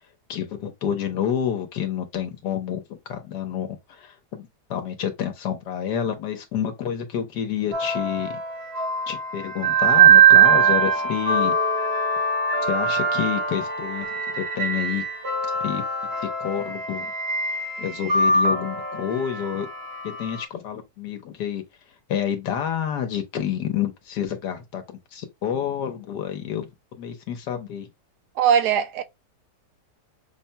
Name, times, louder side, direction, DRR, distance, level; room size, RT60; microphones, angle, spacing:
voice 1, 0.3-2.8 3.1-8.4 9.1-11.5 12.7-15.0 15.6-15.8 16.2-17.1 17.8-19.7 20.2-21.6 22.1-24.8 25.1-26.7 27.0-27.9, left 9 dB, 85° left, 1.4 m, -29 dB
sound 1, 7.7-20.4, right 6 dB, 50° right, 0.7 m, -21 dB
voice 2, 28.4-29.0, right 8 dB, 75° right, 1.2 m, -20 dB
5.9 x 2.2 x 2.7 m
omnidirectional pair, 1.8 m